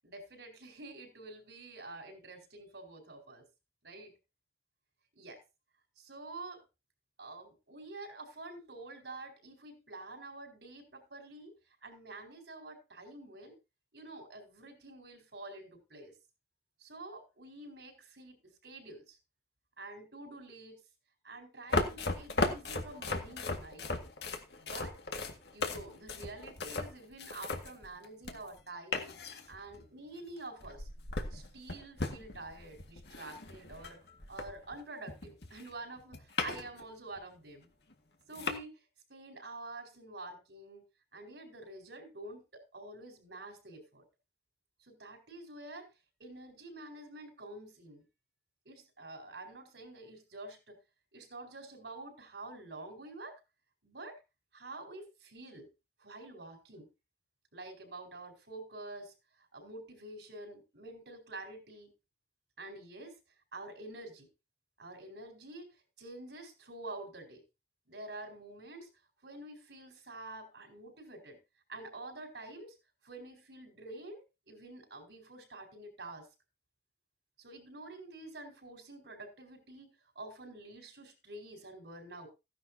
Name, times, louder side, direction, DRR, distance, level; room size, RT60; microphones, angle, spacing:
voice 1, 0.0-3.4 3.8-4.1 5.1-5.4 6.0-6.6 7.2-11.5 11.8-13.6 13.9-16.1 16.8-19.2 19.8-20.8 21.2-23.9 24.6-25.0 25.5-29.2 29.5-30.9 31.3-34.0 34.3-37.7 38.3-38.8 39.1-40.8 41.1-44.0 44.8-45.9 46.2-48.0 48.6-50.8 51.1-53.4 53.8-54.2 54.5-55.7 56.0-56.9 57.5-61.9 62.6-63.2 63.5-64.3 64.8-67.4 67.9-68.9 69.2-71.4 71.7-72.7 73.0-74.2 74.5-76.3 77.4-82.3, right 2 dB, 85° right, 4.6 m, -48 dB
sound 1, 21.7-28.6 28.9-29.8 30.6-34.8 35.1-36.8 37.2-37.3 37.9-38.0 38.3-38.6, left 3 dB, 75° left, 1.8 m, -37 dB
16.0 x 11.0 x 2.8 m
head